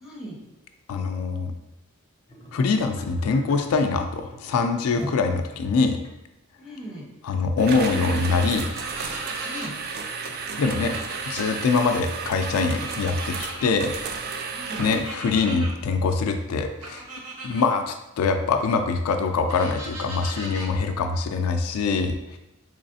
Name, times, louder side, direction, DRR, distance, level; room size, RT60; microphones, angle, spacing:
voice 1, 0.0-0.4 6.6-7.1 9.4-9.8 14.5-14.9, equal, ahead, -5 dB, 0.8 m, -38 dB
voice 2, 0.9-1.5 2.5-6.0 7.2-8.7 10.6-13.9 14.8-17.1 17.4-22.4, left 4 dB, 80° left, 6 dB, 0.3 m, -24 dB
sound 1, 2.3-6.1 6.8-6.9, equal, 25° left, 0.6 m, -41 dB
sound 2, 7.6-15.1, right 5 dB, 45° right, 0.3 m, -33 dB
sound 3, 8.6-9.7 10.6-11.6 12.7-13.7 14.8-15.7 16.8-17.7 19.5-20.7, right 2 dB, 90° right, 0.8 m, -38 dB
4.0 x 3.1 x 2.6 m, 0.92 s
head